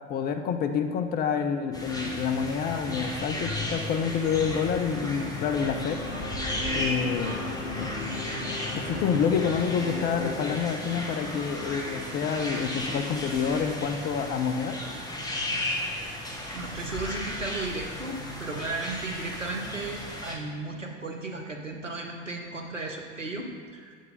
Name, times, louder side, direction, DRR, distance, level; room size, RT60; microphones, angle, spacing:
voice 1, 0.1-6.0 6.7-7.4 7.7-7.9 8.7-14.8, left 7 dB, 25° left, 7 dB, 0.4 m, -28 dB
sound 1, 1.7-20.4, left 1 dB, 10° left, 1.1 m, -35 dB
sound 2, 2.8-13.8, right 2 dB, 15° right, 0.9 m, -43 dB
sound 3, 5.6-10.6, left 4 dB, 90° left, 0.5 m, -37 dB
voice 2, 15.8-16.2 16.5-23.9, right 2 dB, 90° right, 2 dB, 0.8 m, -35 dB
7.7 x 3.8 x 5.1 m, 2.2 s
figure-of-eight pair, 75°, 37 cm